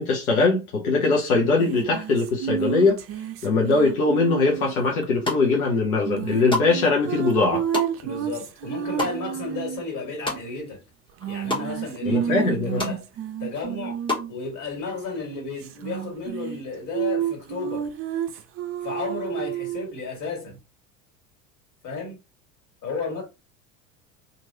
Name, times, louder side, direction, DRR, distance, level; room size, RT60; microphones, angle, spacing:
voice 1, 0.0-3.0 3.4-7.6 12.1-12.8, left 3 dB, 85° left, 0.9 m, -21 dB
sound 1, 1.6-4.9 6.0-9.8 11.2-14.3 15.6-16.6 16.9-19.9, right 9 dB, 35° right, 0.5 m, -30 dB
sound 2, 5.0-5.7 6.1-10.8 11.1-11.7 12.1-12.2 12.4-13.0 13.4-14.3, left 2 dB, 10° left, 0.9 m, -31 dB
voice 2, 8.0-10.8 11.3-13.1 13.4-14.0 14.3-17.9 18.8-20.6 21.8-22.2 22.8-23.2, left 4 dB, 45° left, 1.9 m, -33 dB
3.0 x 2.6 x 2.7 m
hypercardioid pair, 75°, 42 cm